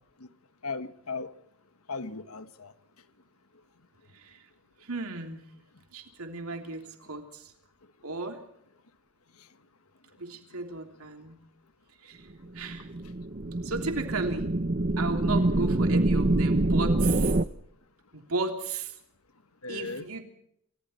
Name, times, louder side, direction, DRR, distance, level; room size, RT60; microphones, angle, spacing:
voice 1, 0.6-1.3 1.9-2.7 9.4-9.5 15.3-15.7 19.6-20.0, left 4 dB, 90° left, 1.5 m, -37 dB
voice 2, 4.1-4.4 4.8-5.4 5.9-7.5 8.0-8.4 10.2-11.4 12.0-12.3 12.5-12.9 13.6-14.5 15.0-17.4 18.1-18.9 19.7-20.2, right 3 dB, 85° right, 3.2 m, -34 dB
sound 1, 12.6-17.4, right 2 dB, 40° right, 0.9 m, -25 dB
29.5 x 26.5 x 4.4 m
head